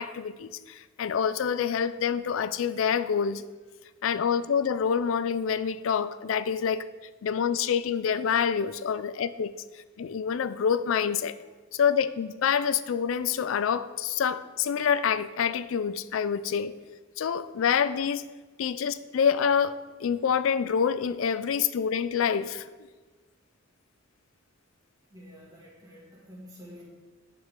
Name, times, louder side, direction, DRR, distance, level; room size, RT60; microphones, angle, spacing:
voice 1, 0.0-3.4 4.0-6.9 7.2-9.5 10.0-11.4 11.7-16.7 17.2-18.3 18.6-22.6, left 7 dB, 75° left, 14 dB, 0.4 m, -27 dB
voice 2, 25.1-26.8, equal, 20° right, -6 dB, 2.3 m, -48 dB
9.2 x 6.1 x 3.7 m, 1.3 s
head